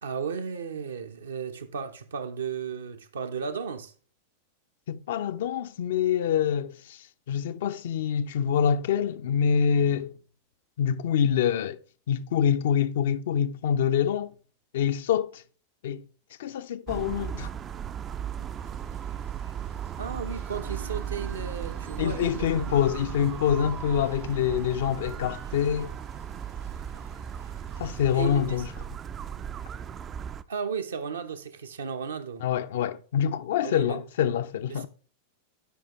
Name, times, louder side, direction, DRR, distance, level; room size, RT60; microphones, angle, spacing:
voice 1, 0.0-3.9 20.0-22.7 28.1-28.6 30.5-32.4 33.6-34.0 34.7-34.9, right 6 dB, 70° right, 0.7 m, -34 dB
voice 2, 4.9-10.1 10.8-11.8 12.1-14.3 14.7-15.4 15.8-16.0 16.4-17.5 22.0-25.9 27.8-28.7 32.4-34.9, left 8 dB, 55° left, 0.4 m, -26 dB
sound 1, 16.9-30.4, right 8 dB, 25° right, 0.4 m, -36 dB
sound 2, 18.1-29.0, right 1 dB, 85° right, 3.6 m, -52 dB
11.5 x 4.9 x 3.0 m
figure-of-eight pair, 90°, 0 cm